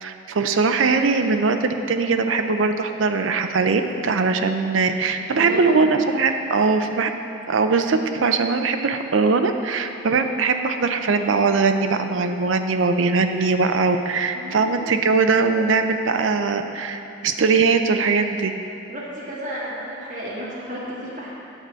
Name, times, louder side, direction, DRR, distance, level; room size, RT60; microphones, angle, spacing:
voice 1, 0.0-7.1 7.5-18.5, right 4 dB, 90° right, 6 dB, 0.5 m, -21 dB
voice 2, 5.3-5.8 14.3-14.9 18.9-21.3, right 1 dB, 40° right, -7 dB, 1.7 m, -33 dB
9.2 x 4.8 x 7.4 m, 2.7 s
head